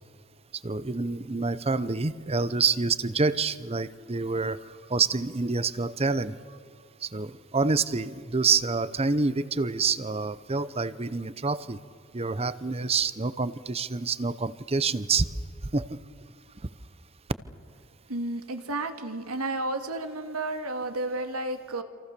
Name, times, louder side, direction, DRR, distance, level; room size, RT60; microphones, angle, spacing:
voice 1, 0.6-4.6 4.9-6.4 7.0-11.8 12.1-15.3 15.7-16.0, right 4 dB, 25° right, 15 dB, 0.8 m, -27 dB
voice 2, 18.1-21.8, right 2 dB, 85° right, 7 dB, 2.3 m, -32 dB
27.5 x 27.5 x 6.9 m, 2.1 s
head